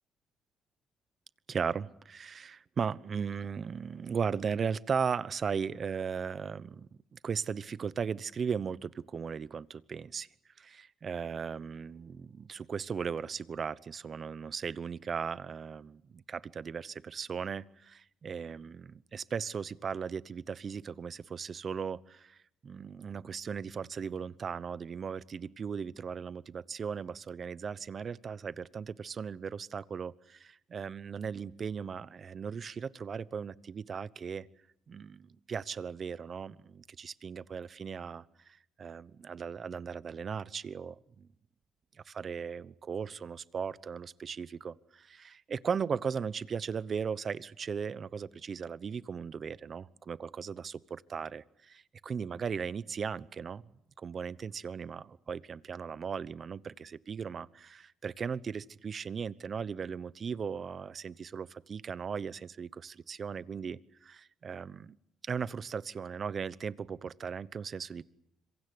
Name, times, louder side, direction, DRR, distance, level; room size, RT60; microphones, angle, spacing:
voice 1, 1.5-10.3 10.6-22.4 22.6-34.5 34.9-41.3 42.0-53.6 54.0-65.0 65.2-68.0, right 6 dB, 45° right, 18 dB, 1.0 m, -37 dB
26.5 x 23.5 x 8.0 m, 0.76 s
cardioid pair, 90°, 0 cm